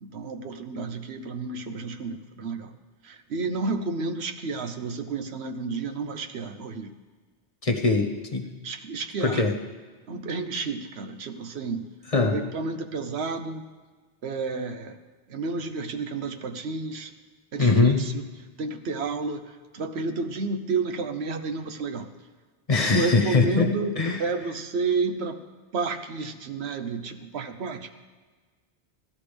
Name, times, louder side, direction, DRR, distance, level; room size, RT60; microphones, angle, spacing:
voice 1, 0.0-2.7 3.0-6.9 8.6-9.4 10.1-11.9 12.3-13.7 14.2-15.0 15.3-17.1 17.5-18.3 18.6-19.5 19.7-22.1 22.8-25.4 25.7-27.9, right 4 dB, 80° right, 8 dB, 1.1 m, -31 dB
voice 2, 7.6-8.5 9.2-9.6 12.1-12.4 17.6-18.1 22.7-24.2, left 3 dB, 35° left, 2 dB, 1.1 m, -22 dB
16.0 x 12.0 x 3.4 m, 1.4 s
omnidirectional pair, 1.1 m